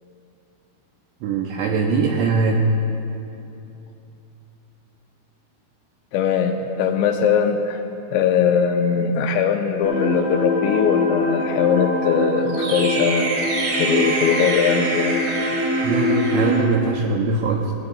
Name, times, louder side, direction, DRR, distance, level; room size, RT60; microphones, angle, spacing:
voice 1, 1.2-2.6 15.8-17.7, right 4 dB, 90° right, 1 dB, 2.5 m, -21 dB
voice 2, 6.1-7.8 8.1-13.4 13.7-15.2, left 7 dB, 85° left, 4 dB, 2.6 m, -20 dB
sound 1, 9.8-16.6, equal, 60° right, 3.9 m, -23 dB
18.5 x 16.5 x 2.3 m, 2.8 s
omnidirectional pair, 5.6 m